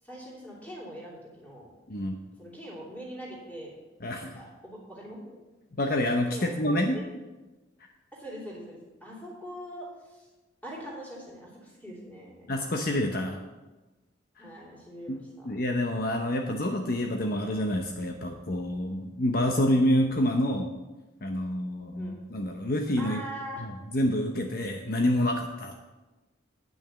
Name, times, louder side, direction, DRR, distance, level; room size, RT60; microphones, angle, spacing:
voice 1, 0.0-1.7 2.4-3.8 4.2-5.4 6.3-7.0 8.1-10.3 10.6-12.5 14.4-15.5 21.9-22.2 23.0-23.6, equal, 10° left, -5 dB, 3.0 m, -42 dB
voice 2, 4.0-4.3 5.8-7.0 12.5-13.4 14.4-14.5 15.1-15.2 15.4-20.7 21.2-23.2 23.6-25.8, left 1 dB, 50° left, 2 dB, 0.8 m, -27 dB
9.0 x 6.1 x 8.0 m, 1.1 s
head